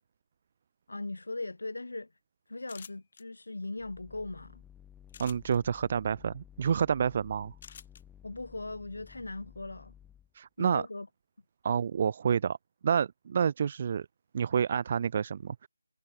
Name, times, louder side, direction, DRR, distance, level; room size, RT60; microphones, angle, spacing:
voice 1, 0.9-2.1 2.5-4.6 8.2-9.9 10.6-11.1, left 2 dB, 75° left, 2.3 m, -39 dB
sound 1, 2.6-3.2 5.1-5.6 7.6-8.0, left 7 dB, 25° left, 2.3 m, -48 dB
sound 2, 3.8-10.3, left 9 dB, 5° left, 1.4 m, -55 dB
voice 2, 5.2-7.5 10.3-10.8 11.6-12.6 12.8-14.1 14.3-15.7, right 7 dB, 25° right, 0.6 m, -28 dB
figure-of-eight pair, 170°, 0 cm